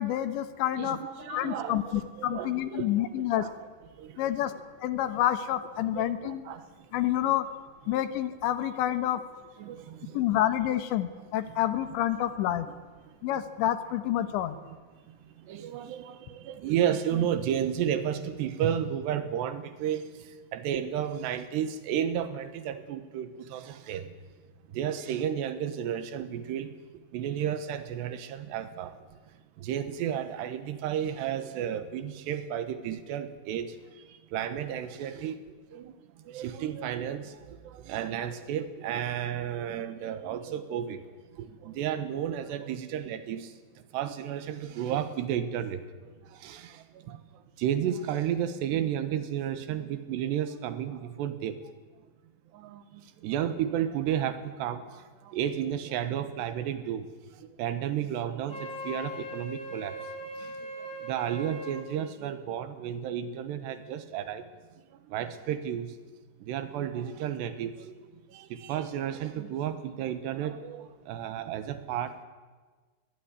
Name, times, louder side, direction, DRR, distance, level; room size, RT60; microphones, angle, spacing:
voice 1, 0.0-1.0 1.3-3.5 4.2-4.5 4.8-6.4 6.9-7.5 7.9-9.2 10.1-12.7 13.2-14.6, left 12 dB, 80° left, 11 dB, 3.4 m, -28 dB
voice 2, 0.8-3.5 4.0-4.6 5.8-6.9 9.6-10.3 11.5-11.6 13.0-13.3 14.7-14.8 15.0-24.1 24.7-26.7 27.1-29.2 29.6-35.4 35.7-41.0 41.3-51.7 52.5-60.0 60.4-64.4 64.9-66.0 66.4-72.3, right 9 dB, 75° right, 11 dB, 3.3 m, -33 dB
Wind instrument woodwind instrument, 58.5-61.9, equal, 30° left, 3.0 m, -39 dB
21.0 x 19.0 x 9.9 m, 1.4 s
omnidirectional pair, 5.3 m